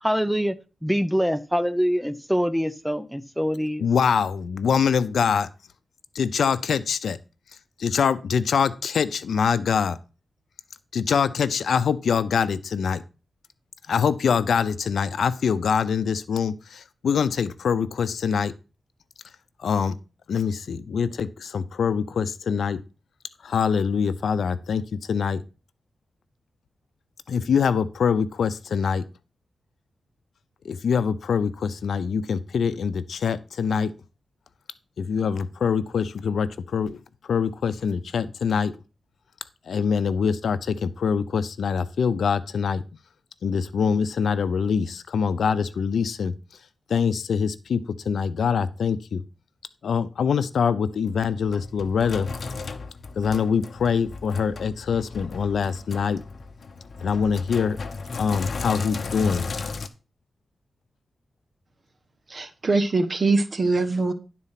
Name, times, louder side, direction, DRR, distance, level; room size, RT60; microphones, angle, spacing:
voice 1, 0.0-0.5 0.8-3.9, equal, ahead, 0.8 m, -24 dB
voice 2, 3.8-5.5 6.1-7.2 7.8-10.0 10.9-13.0 13.9-18.5 19.6-20.0 20.3-22.8 23.4-25.4 27.3-29.0 30.6-33.9 35.0-37.0 37.3-38.7 39.7-42.8 43.4-46.3 46.9-49.2 49.8-52.3 53.2-56.2 57.0-57.8 58.2-59.5, left 6 dB, 90° left, 0.6 m, -24 dB
Sink (filling or washing), 51.0-59.9, left 4 dB, 60° left, 0.8 m, -35 dB
voice 3, 62.3-64.1, right 3 dB, 45° right, 1.2 m, -23 dB
11.0 x 4.2 x 5.8 m
wide cardioid pair, 90°, 0 cm